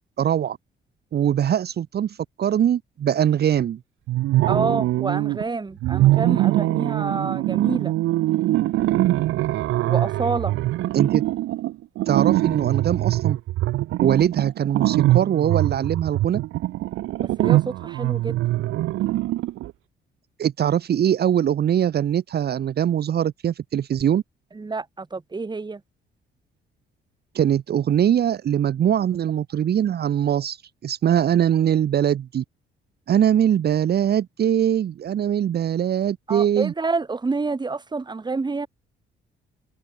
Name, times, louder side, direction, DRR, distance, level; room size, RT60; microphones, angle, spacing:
voice 1, 0.2-0.6 1.1-3.8 10.9-11.3 12.1-13.4 14.0-16.4 20.4-24.2 27.3-30.6 30.8-32.4 33.1-36.7, right 9 dB, 55° right, 1.0 m, -22 dB
sound 1, 4.1-5.4 5.8-19.7, right 16 dB, 90° right, 1.9 m, -22 dB
voice 2, 4.4-7.9 9.9-10.5 17.2-18.4 24.5-25.8 36.3-38.7, right 3 dB, 20° right, 1.6 m, -28 dB
open air
cardioid pair, 90°, 20 cm